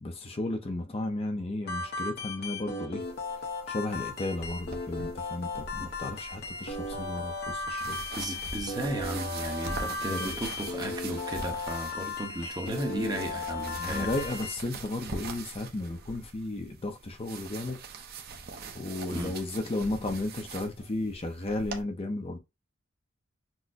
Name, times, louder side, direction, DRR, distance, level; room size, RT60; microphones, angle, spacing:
voice 1, 0.0-3.0 3.7-8.0 9.7-10.3 13.8-17.8 18.7-22.4, left 2 dB, 30° left, 0.6 m, -34 dB
sound 1, 1.7-14.6, left 3 dB, 55° left, 0.9 m, -36 dB
sound 2, 3.0-21.8, right 4 dB, 50° right, 0.7 m, -43 dB
voice 2, 8.1-14.1 19.1-19.4, right 1 dB, 20° right, 0.8 m, -35 dB
6.1 x 2.1 x 2.5 m
head